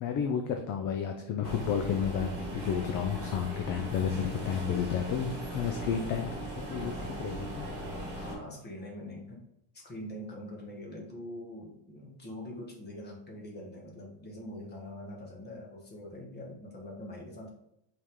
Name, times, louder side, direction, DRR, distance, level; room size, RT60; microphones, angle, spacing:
voice 1, 0.0-7.7, left 7 dB, 45° left, 5 dB, 0.6 m, -32 dB
sound 1, 1.4-8.4, right 1 dB, 15° right, 2.3 m, -39 dB
voice 2, 8.2-9.4 9.7-17.5, left 1 dB, 20° left, 0 dB, 1.4 m, -43 dB
5.4 x 4.8 x 3.7 m, 0.82 s
cardioid pair, 170°, 44 cm